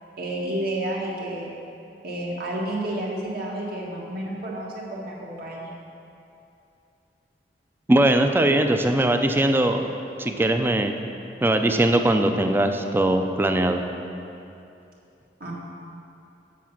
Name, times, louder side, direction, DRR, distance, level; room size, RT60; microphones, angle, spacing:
voice 1, 0.2-1.5 2.0-5.7 15.4-15.5, right 1 dB, 60° right, -4 dB, 1.7 m, -30 dB
voice 2, 7.9-9.9 10.2-10.9 11.4-13.8, right 1 dB, 15° right, 6 dB, 0.4 m, -20 dB
7.3 x 7.0 x 5.9 m, 2.7 s
head